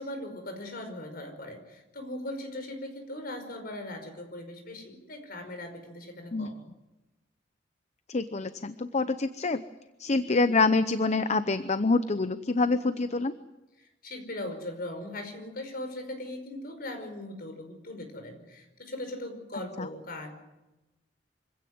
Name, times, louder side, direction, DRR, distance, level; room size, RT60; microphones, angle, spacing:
voice 1, 0.0-6.6 14.0-20.3, left 1 dB, 55° left, 6 dB, 5.2 m, -39 dB
voice 2, 8.1-9.6 10.0-13.3 19.8-19.9, left 3 dB, 40° left, 12 dB, 0.8 m, -26 dB
25.5 x 16.5 x 9.5 m, 1.0 s
head